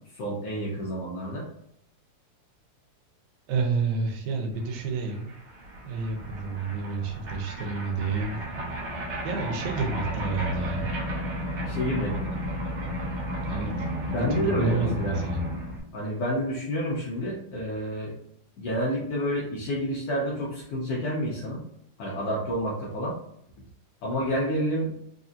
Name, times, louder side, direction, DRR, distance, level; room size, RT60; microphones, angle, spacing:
voice 1, 0.1-1.4 11.6-12.3 14.1-15.2 15.9-18.1 18.6-21.6 22.0-23.1 24.0-24.9, equal, 70° left, -3 dB, 1.5 m, -29 dB
voice 2, 3.5-5.3 5.8-8.4 9.2-10.9 13.4-13.9 14.1-15.4, right 4 dB, 80° right, 2 dB, 2.1 m, -29 dB
sound 1, 4.7-4.8 4.9-15.8, equal, 60° right, 1.1 m, -33 dB
4.8 x 2.7 x 2.4 m, 0.75 s
omnidirectional pair, 3.4 m